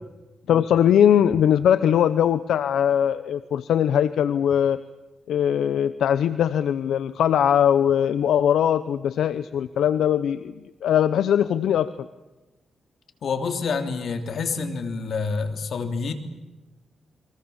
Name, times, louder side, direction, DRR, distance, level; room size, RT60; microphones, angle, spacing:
voice 1, 0.5-4.8 5.3-10.5 10.8-12.1, left 9 dB, 90° left, 13 dB, 0.8 m, -20 dB
voice 2, 13.2-16.1, left 4 dB, 65° left, 6 dB, 3.3 m, -27 dB
29.5 x 23.5 x 7.2 m, 1.1 s
cardioid pair, 95°, 0 cm